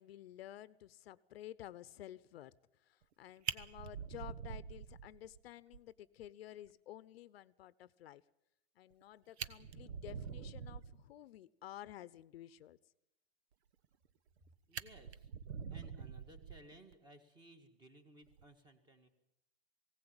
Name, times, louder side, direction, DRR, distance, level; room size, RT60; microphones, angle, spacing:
voice 1, 0.0-2.5 2.8-8.2 8.8-12.8, left 13 dB, 70° left, 17 dB, 0.8 m, -52 dB
Fire, 3.0-3.1 3.4-5.4 5.7-5.8 6.2-6.3 6.7-6.8 8.9-9.0 9.3-11.0 13.8-14.4 14.7-16.9 18.2-18.4, right 7 dB, 80° right, 1.2 m, -45 dB
voice 2, 14.7-15.3 15.7-19.1, right 1 dB, 15° right, 8 dB, 1.9 m, -59 dB
20.0 x 17.0 x 8.9 m, 0.87 s
supercardioid pair, 165°, 32 cm